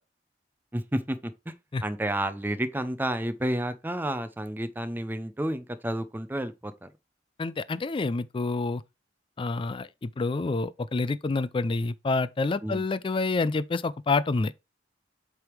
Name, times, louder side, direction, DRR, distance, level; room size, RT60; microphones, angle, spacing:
voice 1, 0.7-1.5 1.8-6.9 12.6-12.8, right 1 dB, 10° right, 0.6 m, -31 dB
voice 2, 7.4-8.8 9.4-14.5, left 3 dB, 30° left, 0.4 m, -28 dB
7.9 x 3.5 x 4.6 m
head